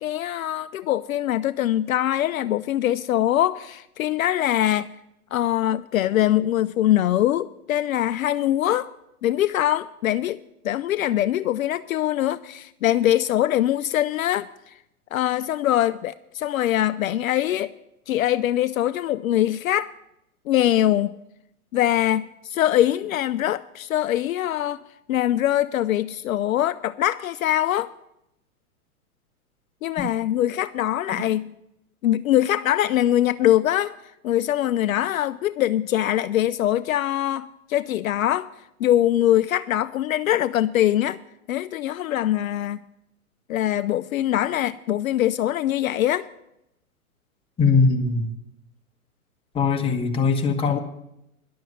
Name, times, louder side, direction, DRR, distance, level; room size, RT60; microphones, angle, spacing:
voice 1, 0.0-4.9 5.3-8.9 9.2-10.4 10.6-14.7 15.1-17.7 18.1-19.9 20.5-21.2 21.7-24.8 25.1-27.9 29.8-31.5 32.0-34.0 34.2-38.5 38.8-41.2 41.5-42.8 43.5-46.3, left 12 dB, 65° left, 0.5 m, -23 dB
voice 2, 47.6-48.3 49.5-50.8, left 4 dB, 10° left, 1.2 m, -20 dB
11.0 x 7.5 x 8.3 m
hypercardioid pair, 120°, 44 cm